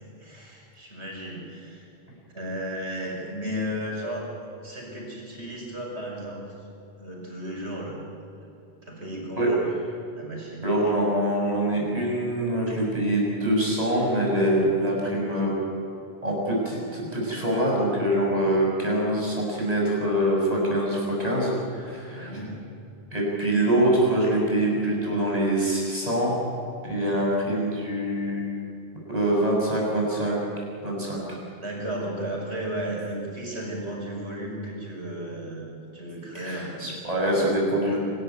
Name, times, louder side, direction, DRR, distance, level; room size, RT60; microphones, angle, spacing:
voice 1, 0.0-1.9 2.3-6.6 7.0-8.0 8.8-9.6 10.2-10.7 22.1-22.6 31.6-36.9 37.6-38.0, right 1 dB, 90° right, -2 dB, 6.3 m, -34 dB
voice 2, 10.6-15.5 16.2-22.3 23.1-26.4 26.8-28.5 29.1-30.4 30.8-31.4 36.3-38.0, right 1 dB, 35° right, -3 dB, 7.0 m, -24 dB
26.0 x 13.0 x 9.5 m, 2.8 s
omnidirectional pair, 1.1 m